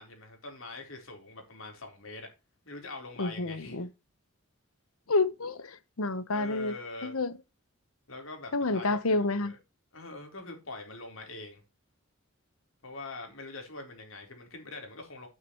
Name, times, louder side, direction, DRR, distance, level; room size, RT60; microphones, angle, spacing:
voice 1, 0.0-2.3 2.7-3.8 6.3-7.2 8.1-9.6 9.9-11.6 12.8-15.3, left 2 dB, 75° left, 3.9 m, -43 dB
voice 2, 3.2-3.9 5.1-6.7 7.0-7.3 8.5-9.5, left 3 dB, 90° left, 1.1 m, -29 dB
9.7 x 9.3 x 3.1 m
head